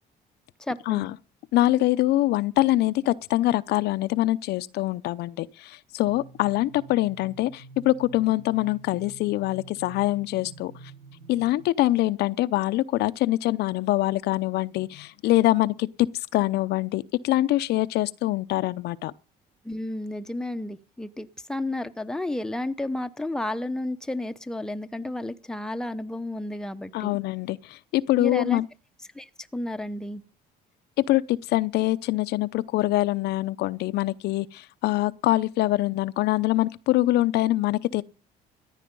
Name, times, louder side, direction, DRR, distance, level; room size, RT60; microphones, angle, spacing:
voice 1, 0.6-1.1 19.6-27.2 28.2-28.6 29.1-30.2, left 1 dB, 5° left, 0.9 m, -32 dB
voice 2, 1.5-10.7 11.3-15.9 16.3-19.1 26.9-28.6 31.1-38.0, left 16 dB, 80° left, 0.7 m, -24 dB
sound 1, 6.1-11.7, right 4 dB, 70° right, 7.0 m, -48 dB
14.5 x 9.9 x 5.4 m
cardioid pair, 110°, 17 cm